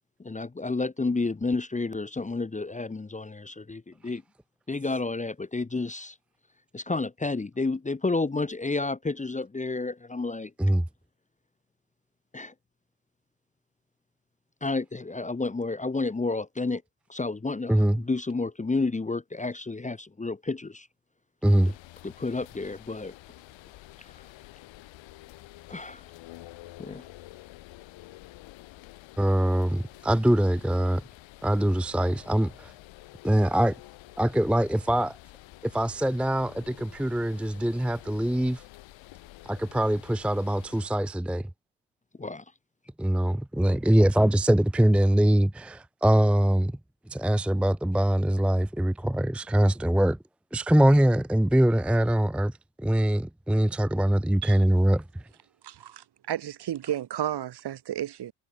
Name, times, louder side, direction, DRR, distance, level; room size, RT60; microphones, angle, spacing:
voice 1, 0.2-4.2 4.7-6.1 6.7-10.5 12.3-12.5 14.6-16.8 17.1-20.9 22.0-23.1 25.7-26.0 26.8-27.0 42.2-42.4, left 3 dB, 15° left, 1.1 m, -30 dB
voice 2, 17.7-18.0 21.4-21.7 29.2-31.0 31.4-32.7 33.2-33.8 34.2-35.2 35.6-38.6 39.4-41.5 43.0-46.7 47.1-50.2 50.5-55.0, right 1 dB, ahead, 0.7 m, -23 dB
sound 1, 21.4-40.9, left 17 dB, 70° left, 2.4 m, -49 dB
voice 3, 55.6-58.3, right 11 dB, 55° right, 2.2 m, -32 dB
hypercardioid pair, 60°, 48 cm